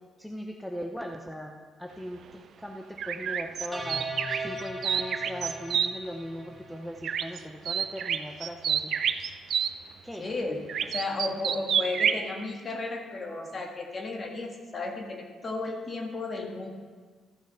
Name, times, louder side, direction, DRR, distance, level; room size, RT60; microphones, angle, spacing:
voice 1, 0.2-8.9 10.0-10.3, equal, 5° left, 2 dB, 0.8 m, -39 dB
sound 1, 3.0-5.9 7.0-7.4 7.7-9.7 10.7-12.2, right 8 dB, 65° right, 0.5 m, -28 dB
sound 2, 3.7-7.0, right 1 dB, 10° right, 1.6 m, -39 dB
voice 2, 10.2-16.7, left 3 dB, 35° left, 2 dB, 1.7 m, -34 dB
14.0 x 5.8 x 5.6 m, 1.5 s
cardioid pair, 90°, 0 cm